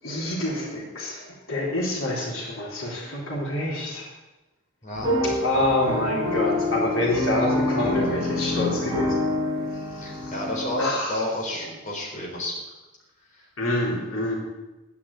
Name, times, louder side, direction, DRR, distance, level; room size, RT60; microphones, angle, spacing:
voice 1, 0.0-4.1 5.4-9.3 9.7-10.3 10.8-11.2 13.6-14.4, left 1 dB, 85° left, -2 dB, 3.6 m, -27 dB
sound 1, 5.0-10.8, left 2 dB, 15° right, 4.2 m, -26 dB
voice 2, 10.0-12.6 13.3-13.5, left 1 dB, 40° left, -2 dB, 4.0 m, -30 dB
11.5 x 9.9 x 8.7 m, 1.1 s
head